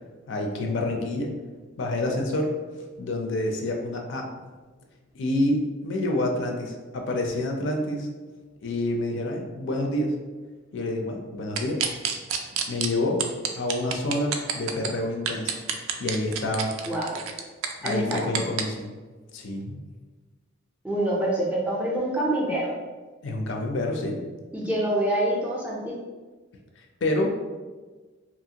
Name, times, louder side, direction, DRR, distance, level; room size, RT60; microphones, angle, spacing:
voice 1, 0.3-1.3 1.8-2.5 3.0-4.3 5.1-8.1 8.6-10.1 10.7-11.8 12.7-13.2 13.6-16.8 17.8-18.9 19.3-19.8 23.2-24.2 27.0-27.6, left 1 dB, 55° left, 2 dB, 0.4 m, -28 dB
sound 1, 11.6-12.9 13.2-14.9 15.3-18.6, right 8 dB, 70° right, 0.3 m, -28 dB
voice 2, 16.8-17.2 17.8-18.3 20.8-22.7 24.5-25.9, right 1 dB, 5° right, -4 dB, 0.4 m, -26 dB
3.0 x 2.4 x 2.7 m, 1.3 s
head